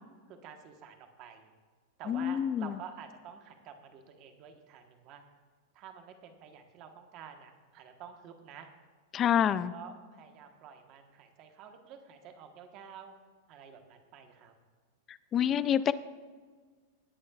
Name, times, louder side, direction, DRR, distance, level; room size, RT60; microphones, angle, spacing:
voice 1, 0.3-1.5 2.0-5.2 5.7-8.7 9.5-13.1 13.5-14.5, right 7 dB, 30° right, 5 dB, 1.2 m, -49 dB
voice 2, 2.1-2.8 9.1-9.7 15.1-15.9, left 9 dB, 20° left, 16 dB, 0.3 m, -27 dB
18.5 x 9.6 x 2.4 m, 1.5 s
supercardioid pair, 170°, 0 cm